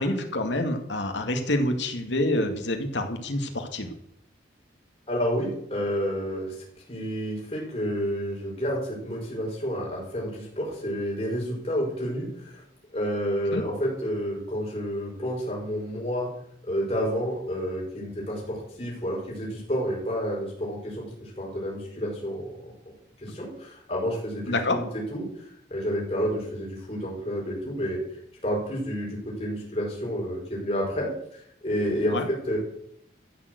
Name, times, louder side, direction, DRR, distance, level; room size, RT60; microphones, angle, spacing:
voice 1, 0.0-3.9 13.5-13.6 24.5-24.8 32.1-32.3, left 1 dB, 80° left, 5 dB, 2.2 m, -27 dB
voice 2, 5.1-6.5 6.9-12.6 12.9-16.3 16.6-22.7 23.2-24.8 25.1-25.2 25.7-28.0 28.4-31.1 31.6-32.6, equal, 35° left, -4 dB, 6.0 m, -30 dB
14.5 x 6.9 x 8.1 m, 0.73 s
head